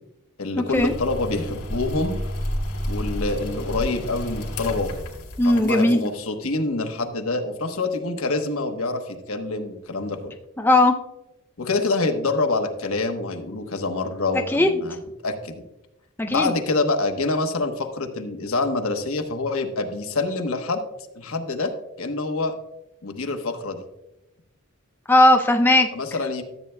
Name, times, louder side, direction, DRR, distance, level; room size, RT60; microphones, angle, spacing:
voice 1, 0.4-2.2 2.9-5.0 5.4-10.3 11.6-15.0 15.2-15.6 16.3-20.8 21.1-21.7 22.0-22.5 23.0-23.8 25.9-26.4, left 3 dB, 65° left, 5 dB, 1.1 m, -26 dB
sound 1, 0.7-6.1, equal, 85° left, 2.9 m, -30 dB
voice 2, 5.4-6.1 10.6-10.9 14.5-14.7 16.2-16.5 25.1-25.9, left 1 dB, 10° left, 4 dB, 0.5 m, -17 dB
14.0 x 8.3 x 2.2 m, 0.91 s
head